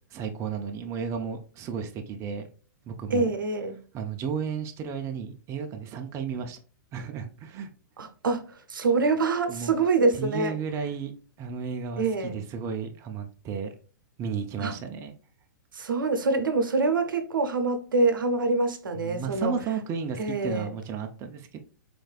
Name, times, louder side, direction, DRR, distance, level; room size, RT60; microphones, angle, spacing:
voice 1, 0.1-2.5 2.9-3.3 3.9-6.6 6.9-7.7 9.5-9.8 10.2-11.1 11.4-13.7 14.2-15.1 19.0-21.6, right 6 dB, 25° right, 0.5 m, -33 dB
voice 2, 3.1-3.8 8.0-10.5 12.0-12.4 14.6-14.7 15.7-19.5 20.2-20.7, right 3 dB, 85° right, 0.7 m, -25 dB
4.1 x 3.2 x 2.3 m
hypercardioid pair, 120°, 11 cm